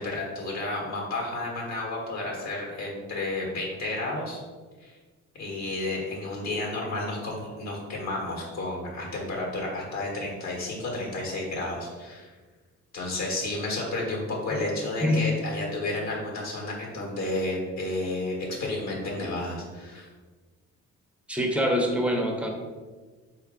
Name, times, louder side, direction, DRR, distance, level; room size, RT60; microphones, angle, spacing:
voice 1, 0.0-4.4 4.8-5.0 5.4-12.3 12.9-20.1, left 2 dB, 65° left, -2 dB, 1.5 m, -31 dB
voice 2, 15.0-15.3 21.3-22.5, equal, 5° right, 0 dB, 0.7 m, -24 dB
4.1 x 2.8 x 3.7 m, 1.4 s
cardioid pair, 90°, 30 cm